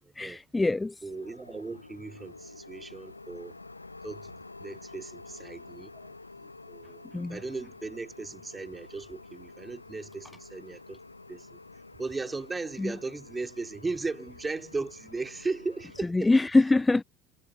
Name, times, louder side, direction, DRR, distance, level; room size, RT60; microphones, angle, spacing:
voice 1, 0.2-1.0 7.1-7.4 12.8-12.9 16.1-17.0, left 2 dB, 15° left, 0.4 m, -23 dB
voice 2, 1.0-3.5 4.0-5.9 6.7-7.0 7.3-11.0 11.3-11.6 12.0-16.3, right 3 dB, 15° right, 2.7 m, -37 dB
sound 1, 1.1-16.1, left 3 dB, 90° left, 1.0 m, -49 dB
figure-of-eight pair, 65°, 0 cm